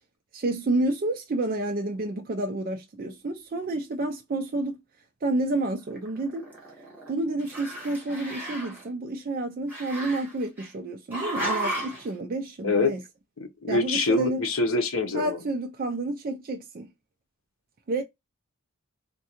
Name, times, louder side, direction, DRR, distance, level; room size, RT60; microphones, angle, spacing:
voice 1, 0.3-4.8 5.2-6.5 7.1-13.0 13.7-14.5 15.1-16.9 17.9-18.0, right 2 dB, 40° right, 0.4 m, -29 dB
Growling, 5.9-7.1 7.4-8.8 9.7-10.7 11.1-12.1, right 1 dB, 10° right, 1.1 m, -34 dB
voice 2, 13.4-15.4, left 3 dB, 75° left, 0.8 m, -25 dB
3.5 x 2.2 x 2.8 m
head